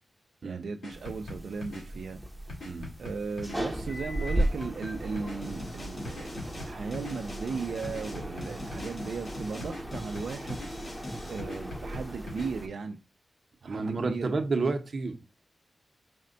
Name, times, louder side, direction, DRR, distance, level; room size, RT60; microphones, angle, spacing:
voice 1, 0.4-2.2 3.0-10.6 11.3-13.0 13.6-14.3, right 5 dB, 80° right, 0.3 m, -36 dB
sound 1, 0.8-1.8 2.5-3.6 4.3-5.4 6.0-7.2 7.8-8.9 9.6-10.7 11.4-12.5, left 2 dB, 80° left, 1.6 m, -41 dB
sound 2, 0.9-12.7, right 1 dB, ahead, 0.6 m, -36 dB
sound 3, 5.4-11.4, left 1 dB, 40° left, 1.2 m, -43 dB
voice 2, 13.6-15.2, right 3 dB, 50° right, 0.7 m, -30 dB
4.2 x 2.2 x 3.7 m
wide cardioid pair, 120°, 0 cm